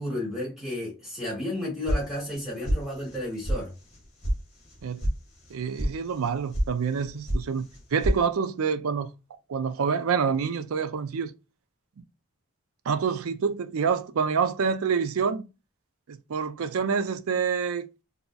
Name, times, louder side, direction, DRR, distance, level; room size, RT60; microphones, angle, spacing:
voice 1, 0.0-3.7, left 1 dB, ahead, 2.0 m, -32 dB
sound 1, 1.9-2.4 2.7-3.2 3.4-3.6 3.9-4.4 4.6-5.1 5.4-5.9 6.2-6.7 6.9-7.4 7.7-8.2, equal, 35° left, 1.8 m, -27 dB
voice 2, 5.5-7.7 7.9-9.1 9.5-11.3 12.9-15.5 16.1-17.9, right 6 dB, 80° right, 0.4 m, -27 dB
3.9 x 2.7 x 2.2 m
head